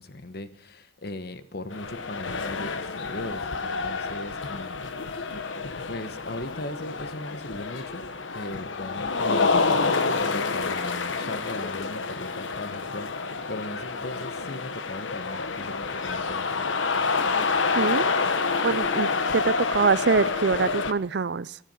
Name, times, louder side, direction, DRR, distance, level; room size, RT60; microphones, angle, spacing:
voice 1, 0.0-4.8 5.1-5.5 5.9-8.0 8.3-9.8 10.2-16.7, left 1 dB, 55° left, 1.2 m, -38 dB
sound 1, 1.7-20.9, left 4 dB, 75° left, 1.1 m, -28 dB
voice 2, 17.7-18.1 18.6-21.6, right 5 dB, 60° right, 0.5 m, -24 dB
18.0 x 12.5 x 5.5 m
head